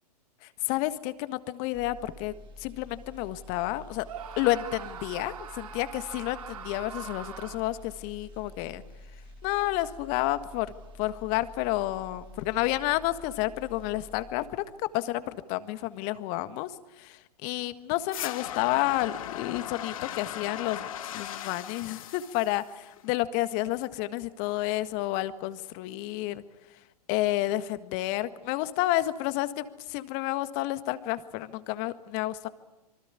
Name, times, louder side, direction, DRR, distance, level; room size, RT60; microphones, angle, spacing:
voice 1, 0.4-2.3 2.6-4.0 4.4-8.8 9.4-10.7 11.0-16.7 17.0-26.4 27.1-32.5, left 16 dB, 40° left, 12 dB, 1.7 m, -30 dB
sound 1, 1.7-14.9 15.2-15.4, left 1 dB, 25° right, 4.0 m, -49 dB
Screaming, 4.0-7.8, right 8 dB, 65° right, 2.8 m, -42 dB
sound 2, 18.1-23.1, left 11 dB, 60° left, 2.1 m, -38 dB
26.5 x 24.0 x 8.4 m, 1.0 s
figure-of-eight pair, 110°, 20 cm